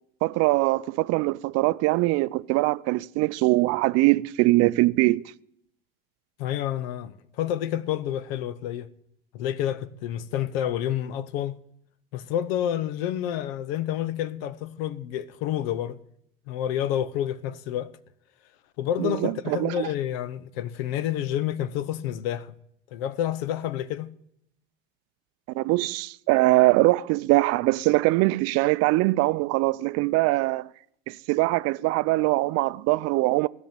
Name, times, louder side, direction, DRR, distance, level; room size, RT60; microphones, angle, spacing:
voice 1, 0.2-5.2 19.0-19.9 25.5-30.7 31.1-33.5, right 20 dB, 55° right, 0.5 m, -22 dB
voice 2, 6.4-8.9 9.3-11.6 12.1-16.0 16.5-17.9 18.8-22.5 22.9-24.1, left 11 dB, 70° left, 0.9 m, -29 dB
16.0 x 6.4 x 8.9 m
hypercardioid pair, 75°, 31 cm